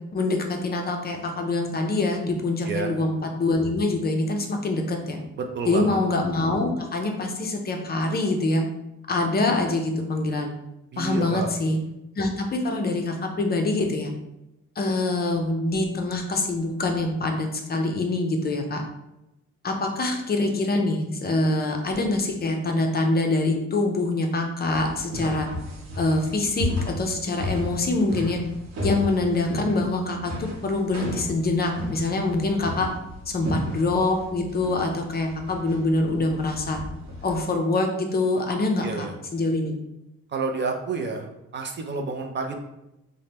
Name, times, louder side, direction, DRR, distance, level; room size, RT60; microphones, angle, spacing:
voice 1, 0.1-5.2 5.6-8.6 9.1-10.5 11.0-11.8 12.2-14.1 14.8-18.8 19.6-25.5 26.0-28.4 28.8-32.9 33.3-36.8 37.2-39.1 39.3-39.7, left 2 dB, 30° left, 3 dB, 0.5 m, -25 dB
voice 2, 2.6-3.0 5.4-6.0 10.9-11.5 38.8-39.1 40.3-42.6, right 4 dB, 40° right, 3 dB, 0.4 m, -29 dB
sound 1, 24.7-37.4, left 1 dB, 65° right, 0.8 m, -34 dB
2.7 x 2.1 x 3.4 m, 0.90 s
cardioid pair, 90°, 30 cm